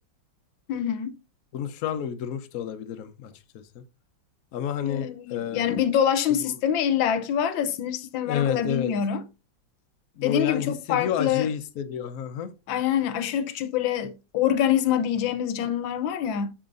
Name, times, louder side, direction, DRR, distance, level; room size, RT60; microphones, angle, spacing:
voice 1, 0.7-1.1 4.8-9.2 10.2-11.5 12.7-16.5, left 9 dB, 85° left, 1.5 m, -25 dB
voice 2, 1.5-3.8 4.5-5.8 6.4-6.5 8.2-8.9 10.2-12.5, left 8 dB, 60° left, 1.0 m, -30 dB
8.6 x 6.0 x 2.5 m
omnidirectional pair, 2.0 m